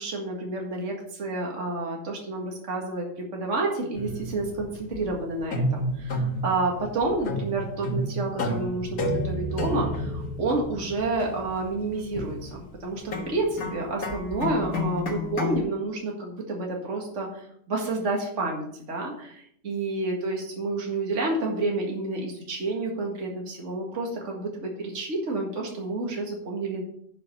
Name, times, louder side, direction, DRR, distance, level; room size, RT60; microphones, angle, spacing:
voice 1, 0.0-26.8, right 2 dB, 50° right, -1 dB, 2.1 m, -30 dB
sound 1, 3.9-15.6, left 1 dB, 70° left, 1.9 m, -31 dB
11.0 x 6.1 x 5.5 m, 0.67 s
omnidirectional pair, 1.6 m